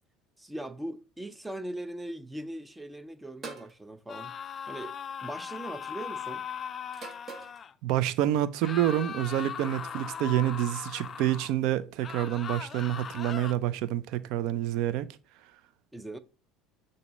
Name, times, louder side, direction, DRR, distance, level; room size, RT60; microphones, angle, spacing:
voice 1, 0.4-4.3 4.7-5.0 5.2-6.5 15.9-16.2, right 1 dB, 10° right, 0.6 m, -40 dB
sound 1, 3.4-3.8 4.9-5.3 6.9-7.6, right 4 dB, 35° right, 1.4 m, -43 dB
sound 2, 4.1-7.7 8.6-11.5 12.0-13.5, left 7 dB, 35° left, 0.4 m, -39 dB
voice 2, 7.8-15.1, right 12 dB, 65° right, 0.5 m, -28 dB
6.7 x 2.8 x 5.1 m
hypercardioid pair, 80°, 0 cm